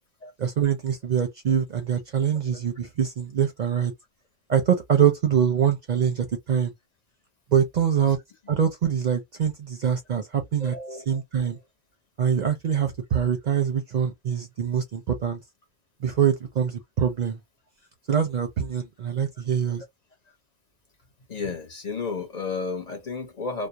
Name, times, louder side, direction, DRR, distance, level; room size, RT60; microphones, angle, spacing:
voice 1, 0.4-3.9 4.5-6.7 7.5-8.2 8.5-10.8 11.1-11.6 12.2-15.4 16.0-17.4 18.1-19.8, right 8 dB, 50° right, 0.6 m, -24 dB
voice 2, 10.6-11.2 21.3-23.7, left 4 dB, 45° left, 0.8 m, -32 dB
2.3 x 2.0 x 2.7 m
omnidirectional pair, 1.1 m